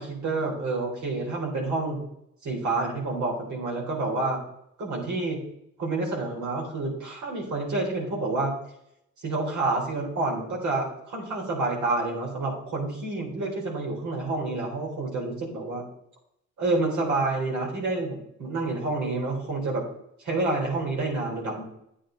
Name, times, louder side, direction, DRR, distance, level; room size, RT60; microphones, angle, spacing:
voice 1, 0.0-2.0 2.4-4.4 4.8-5.4 5.8-8.6 9.2-15.8 16.6-19.8 20.2-21.6, right 3 dB, 70° right, -1 dB, 3.9 m, -28 dB
9.9 x 8.4 x 3.9 m, 0.75 s
cardioid pair, 90°, 30 cm